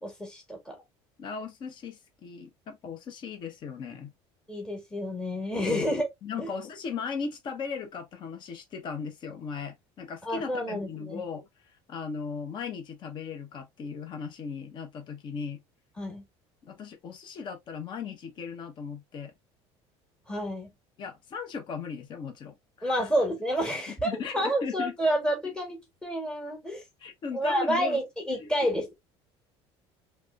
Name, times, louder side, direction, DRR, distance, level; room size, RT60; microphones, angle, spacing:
voice 1, 0.0-0.8 4.5-6.1 6.4-6.5 10.2-11.2 16.0-16.2 20.3-20.7 22.8-26.8 27.3-28.9, equal, 5° left, 1.6 m, -29 dB
voice 2, 1.2-4.1 5.7-5.9 6.2-11.5 11.9-15.6 16.6-19.3 21.0-23.1 24.0-24.9 27.0-28.0 28.3-28.5, left 5 dB, 40° left, 1.0 m, -37 dB
3.3 x 3.1 x 2.4 m
cardioid pair, 140°, 12 cm